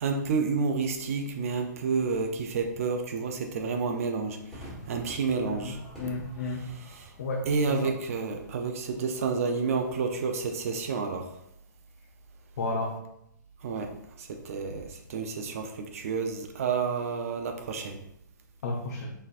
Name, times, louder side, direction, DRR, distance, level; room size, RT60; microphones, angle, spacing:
voice 1, 0.0-4.4 4.9-5.7 7.5-11.2 13.6-13.9 14.5-14.8 15.1-15.7 15.9-18.0, right 5 dB, 45° right, 4 dB, 0.5 m, -29 dB
Crowd / Fireworks, 4.5-11.1, equal, 5° left, 1.4 m, -49 dB
voice 2, 5.4-6.6 7.2-7.5 7.8-7.9 12.6-12.9 18.6-19.1, left 2 dB, 55° left, 1 dB, 0.7 m, -32 dB
4.1 x 3.9 x 2.5 m, 0.77 s
hypercardioid pair, 165°, 10 cm